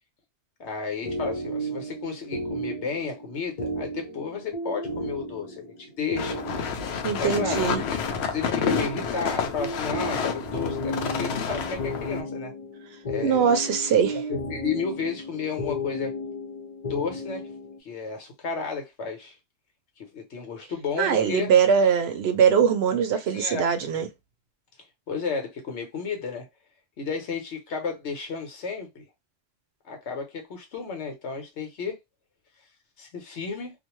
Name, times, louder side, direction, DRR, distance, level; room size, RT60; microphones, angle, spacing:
voice 1, 0.6-6.4 6.8-12.5 13.1-13.5 14.3-16.1 16.9-17.5 17.8-19.3 20.0-21.5 23.3-23.6 25.1-26.5 27.0-29.0 29.8-32.0 33.0-33.7, left 5 dB, 85° left, 1.2 m, -32 dB
sound 1, 1.0-17.8, equal, 40° left, 0.7 m, -34 dB
sound 2, 6.2-12.2, left 6 dB, 70° left, 0.8 m, -29 dB
voice 2, 7.0-7.8 13.2-14.2 21.0-24.1, right 7 dB, 70° right, 0.8 m, -22 dB
2.5 x 2.2 x 3.0 m
omnidirectional pair, 1.1 m